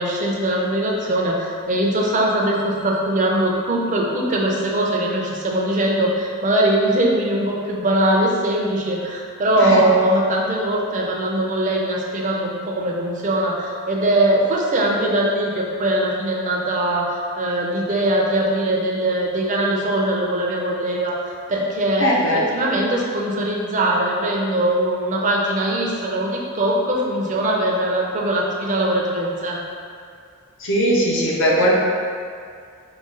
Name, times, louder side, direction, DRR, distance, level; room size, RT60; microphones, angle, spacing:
voice 1, 0.0-22.1 22.5-29.6, right 1 dB, 35° right, -2 dB, 0.5 m, -21 dB
voice 2, 22.0-22.4 30.6-31.7, equal, 60° left, -4 dB, 0.7 m, -19 dB
4.9 x 2.3 x 3.8 m, 2.2 s
head